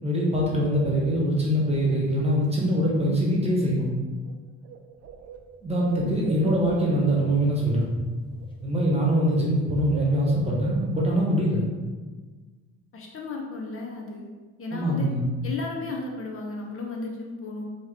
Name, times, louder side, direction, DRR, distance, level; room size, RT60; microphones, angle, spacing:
voice 1, 0.0-3.9 5.6-7.9 8.6-11.6 14.7-15.2, equal, 20° right, -3 dB, 1.0 m, -23 dB
Bird, 4.3-4.4 4.6-7.1 8.2-8.5 8.7-11.1, right 6 dB, 55° right, 0.5 m, -41 dB
sound 1, 5.1-10.8, left 1 dB, 15° left, 0.8 m, -49 dB
voice 2, 12.9-14.3 14.6-15.1 15.4-17.6, left 3 dB, 45° left, 0 dB, 0.7 m, -34 dB
3.5 x 2.8 x 3.2 m, 1.4 s
cardioid pair, 90°, 30 cm